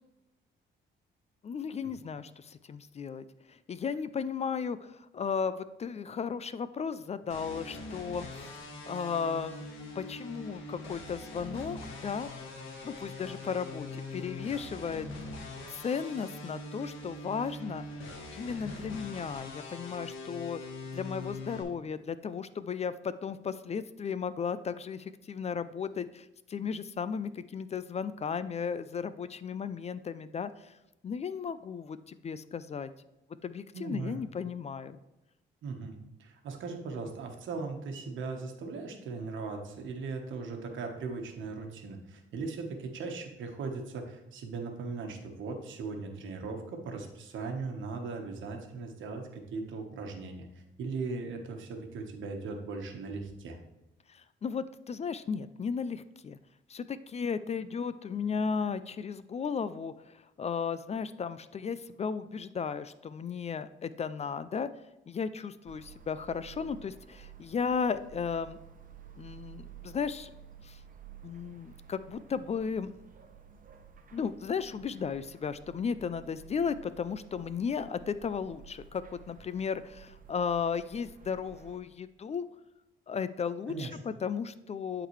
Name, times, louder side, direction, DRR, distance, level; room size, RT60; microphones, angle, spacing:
voice 1, 1.4-8.6 8.9-9.6 9.9-12.3 12.8-15.1 15.7-17.8 18.3-20.6 20.9-30.8 31.0-32.9 33.4-35.0 54.1-56.4 56.7-64.7 65.1-68.6 69.2-70.3 70.6-70.8 71.2-72.9 74.1-82.5 83.1-85.1, left 6 dB, 35° left, 14 dB, 0.4 m, -35 dB
sound 1, 7.3-21.6, left 2 dB, 80° left, 1.5 m, -42 dB
voice 2, 33.7-34.2 35.6-50.5 50.8-53.6 83.7-84.0, right 4 dB, 75° right, 4 dB, 1.2 m, -38 dB
sound 2, 65.7-81.8, right 8 dB, 45° right, 0.8 m, -53 dB
11.0 x 3.9 x 3.2 m, 0.97 s
cardioid pair, 90°, 20 cm